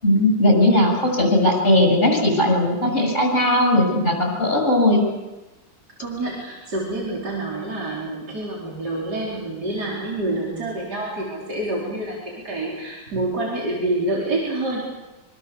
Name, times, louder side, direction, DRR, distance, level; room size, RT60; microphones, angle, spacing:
voice 1, 0.0-5.0, left 1 dB, 30° left, 3 dB, 7.8 m, -18 dB
voice 2, 6.0-14.8, right 2 dB, 55° right, -4 dB, 4.9 m, -27 dB
25.0 x 24.5 x 7.0 m, 1.1 s
omnidirectional pair, 2.1 m